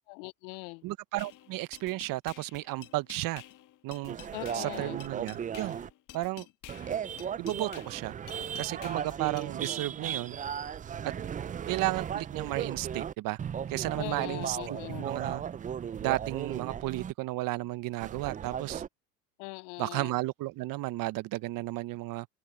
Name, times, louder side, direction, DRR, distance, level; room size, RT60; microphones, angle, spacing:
voice 1, 0.1-0.8 4.3-5.0 14.0-15.1 19.4-20.1, left 31 dB, 70° left, 0.6 m, -41 dB
voice 2, 0.8-3.4 3.8-4.2 4.5-5.8 6.1-6.5 7.4-8.1 8.6-10.4 11.0-11.1 11.7-13.4 13.7-15.4 16.0-18.8 19.8-22.3, right 18 dB, 55° right, 1.1 m, -33 dB
sound 1, 1.2-9.8, left 13 dB, 45° left, 1.7 m, -51 dB
sound 2, 4.1-5.9 6.7-13.1 13.4-17.1 18.0-18.9, right 8 dB, 20° right, 0.5 m, -36 dB
open air
hypercardioid pair, 85°, 41 cm